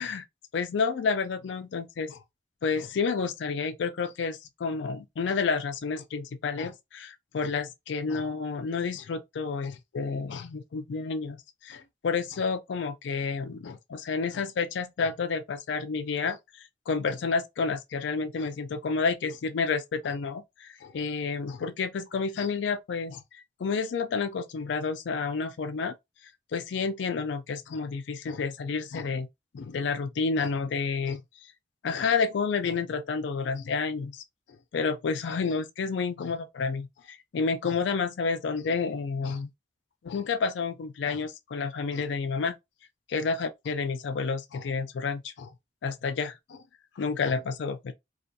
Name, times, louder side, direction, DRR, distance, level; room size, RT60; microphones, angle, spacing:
voice 1, 0.5-2.2 2.6-23.2 23.6-25.9 26.5-29.3 29.5-31.2 31.8-34.2 34.7-39.5 40.0-42.6 43.1-45.5 45.8-46.6 47.0-47.9, left 5 dB, 85° left, 0.4 m, -30 dB
2.4 x 2.3 x 2.5 m
head